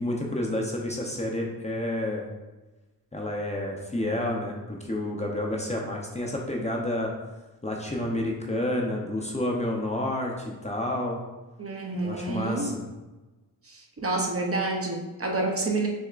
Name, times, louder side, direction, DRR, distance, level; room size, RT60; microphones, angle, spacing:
voice 1, 0.0-2.3 3.1-7.1 7.6-11.2 12.0-12.8, left 1 dB, 20° left, -1 dB, 0.7 m, -29 dB
voice 2, 11.6-12.7 13.6-15.9, right 2 dB, 40° right, 1 dB, 0.7 m, -29 dB
6.2 x 3.4 x 2.5 m, 1.1 s
wide cardioid pair, 100°, 37 cm